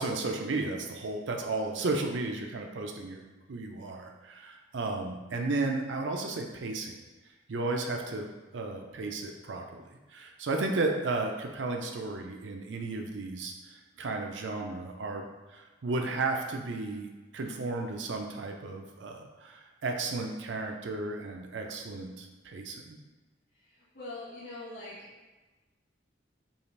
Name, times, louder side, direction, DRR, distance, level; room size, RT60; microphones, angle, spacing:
voice 1, 0.0-7.0 7.5-9.8 10.1-23.0, right 3 dB, 75° right, 2 dB, 0.5 m, -34 dB
voice 2, 23.9-25.1, left 2 dB, 85° left, -13 dB, 1.3 m, -42 dB
5.4 x 2.5 x 3.2 m, 1.2 s
head